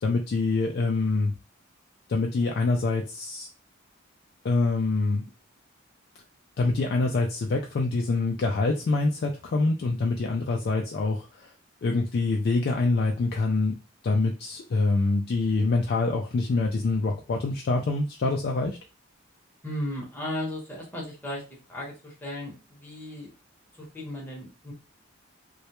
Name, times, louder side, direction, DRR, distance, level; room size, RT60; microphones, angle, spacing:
voice 1, 0.0-1.3 2.1-3.5 4.4-5.2 6.6-11.5 11.8-13.7 14.0-18.8, left 3 dB, 50° left, 1 dB, 0.3 m, -25 dB
voice 2, 19.6-21.4 21.7-23.3 23.8-24.7, left 1 dB, 10° left, -3 dB, 0.9 m, -35 dB
2.2 x 2.1 x 2.9 m, 0.30 s
head